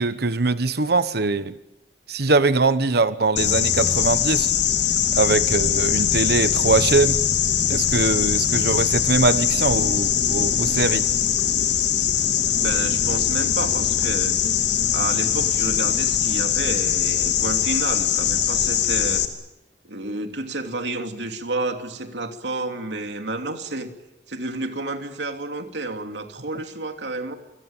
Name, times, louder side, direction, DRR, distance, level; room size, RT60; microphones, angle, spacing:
voice 1, 0.0-1.5 2.1-4.5 5.1-7.2 7.7-11.1, right 3 dB, 65° right, 1.2 m, -22 dB
sound 1, 3.4-19.3, left 9 dB, 80° left, 2.7 m, -21 dB
voice 2, 12.6-14.4 14.9-19.2 19.8-23.9 24.3-27.4, right 2 dB, 80° right, 3.0 m, -30 dB
28.5 x 21.5 x 9.0 m
head